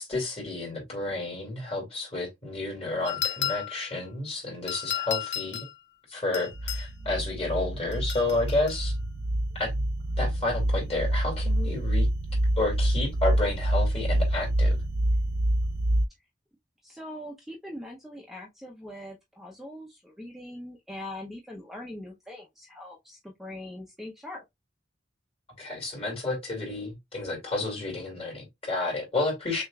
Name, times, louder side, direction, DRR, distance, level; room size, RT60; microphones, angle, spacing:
voice 1, 0.0-5.7 6.1-9.0 9.6-9.7 10.2-12.1 12.6-14.8 25.6-29.6, left 2 dB, 35° left, 2.5 m, -31 dB
sound 1, 3.1-3.9 4.7-5.7 6.3-6.9 7.9-8.8, left 11 dB, 65° left, 0.5 m, -33 dB
sound 2, 6.5-16.1, right 1 dB, 55° right, 0.5 m, -27 dB
voice 2, 16.8-24.4, left 1 dB, ahead, 0.7 m, -42 dB
6.2 x 2.5 x 2.3 m
head